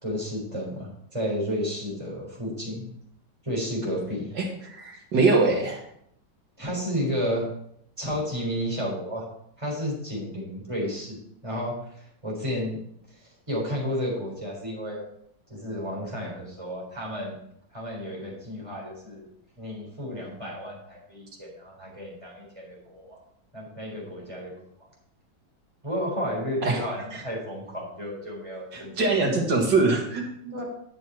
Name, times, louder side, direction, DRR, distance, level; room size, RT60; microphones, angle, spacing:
voice 1, 0.0-2.9 3.4-4.3 6.6-7.5 8.0-9.3 9.6-12.8 13.1-15.0 15.5-17.4 17.7-19.3 19.6-23.2 23.5-24.5 24.8-24.9 25.8-29.2 30.5-30.6, equal, 15° right, -3 dB, 4.0 m, -32 dB
voice 2, 4.4-5.8 26.6-26.8 27.1-27.2 28.7-30.5, right 3 dB, 75° right, 1 dB, 2.5 m, -23 dB
11.5 x 6.6 x 4.5 m, 0.71 s
omnidirectional pair, 1.9 m